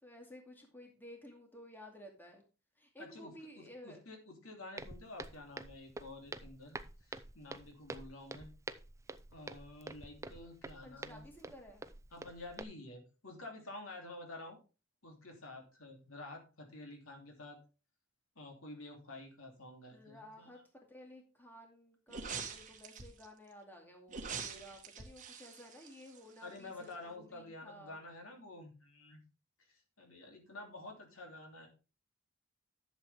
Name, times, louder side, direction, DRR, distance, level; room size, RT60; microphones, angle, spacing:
voice 1, 0.0-2.4 2.8-4.0 10.8-11.9 19.9-20.6 20.9-28.0, equal, 10° left, 1 dB, 2.3 m, -54 dB
voice 2, 3.0-6.8 7.1-8.5 9.3-11.5 12.1-14.6 15.0-17.6 18.3-20.6 26.4-29.2 29.7-31.7, left 2 dB, 80° left, 2 dB, 3.0 m, -50 dB
Walk footsteps, 4.8-12.6, right 2 dB, 15° right, 0.5 m, -48 dB
sound 1, 22.1-23.3 24.1-26.6 26.9-27.0, right 5 dB, 40° right, 1.6 m, -44 dB
11.0 x 7.3 x 3.5 m, 0.32 s
head